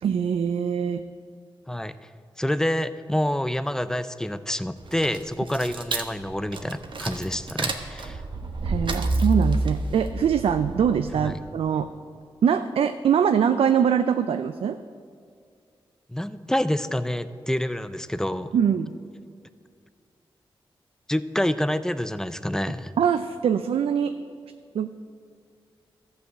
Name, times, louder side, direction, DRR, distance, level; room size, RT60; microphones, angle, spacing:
voice 1, 0.0-1.1 8.6-11.9 12.4-14.8 18.5-18.9 23.0-24.1 24.7-24.9, right 8 dB, 80° right, 10 dB, 0.4 m, -23 dB
voice 2, 2.4-8.2 11.2-11.4 16.1-18.5 21.1-22.9, left 1 dB, 5° left, 13 dB, 0.5 m, -27 dB
sound 1, 4.8-11.3, right 2 dB, 60° right, 1.0 m, -29 dB
13.5 x 5.6 x 7.5 m, 2.2 s
cardioid pair, 70°, 10 cm